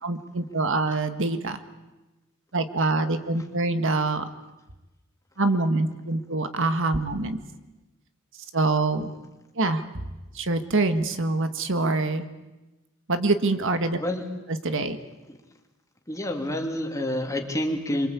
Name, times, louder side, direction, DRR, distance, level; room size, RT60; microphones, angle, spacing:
voice 1, 0.0-1.6 2.5-4.2 5.4-7.4 8.5-9.1 9.6-9.8 10.4-12.3 13.1-14.0 14.6-15.0, right 3 dB, 60° right, 8 dB, 1.7 m, -25 dB
voice 2, 16.1-18.1, left 1 dB, 15° left, 2 dB, 2.9 m, -28 dB
27.0 x 24.0 x 8.5 m, 1.1 s
head